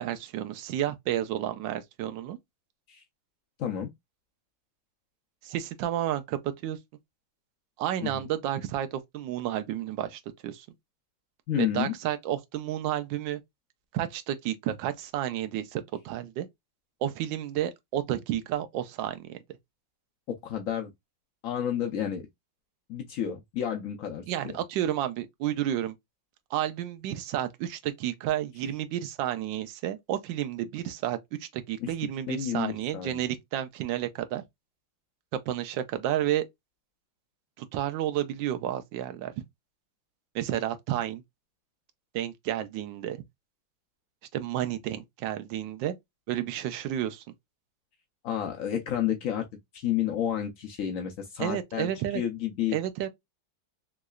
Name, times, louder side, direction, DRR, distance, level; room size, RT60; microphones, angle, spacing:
voice 1, 0.0-2.4 5.4-6.8 7.8-10.7 11.6-13.4 13.9-16.5 17.0-19.4 24.3-25.9 26.5-34.4 35.3-36.4 37.6-39.3 40.3-41.2 42.1-43.2 44.3-45.9 46.3-47.2 51.4-52.2 52.7-53.1, right 12 dB, 80° right, 1.3 m, -31 dB
voice 2, 3.6-3.9 8.0-8.1 11.5-11.9 20.3-20.9 21.4-22.2 22.9-24.6 31.8-31.9 32.3-33.2 48.2-49.5 49.7-52.8, left 10 dB, 75° left, 0.7 m, -31 dB
3.7 x 3.1 x 2.3 m
omnidirectional pair, 2.1 m